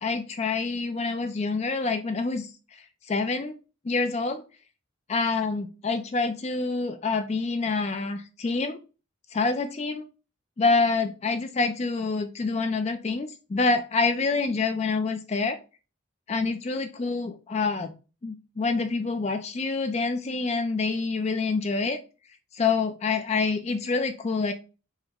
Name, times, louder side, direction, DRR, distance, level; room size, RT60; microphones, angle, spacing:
voice 1, 0.0-3.6 3.8-4.4 5.1-8.8 9.3-10.0 10.6-15.6 16.3-17.9 18.2-22.0 22.5-24.5, left 4 dB, 30° left, 8 dB, 0.3 m, -27 dB
4.8 x 2.1 x 3.4 m, 0.31 s
head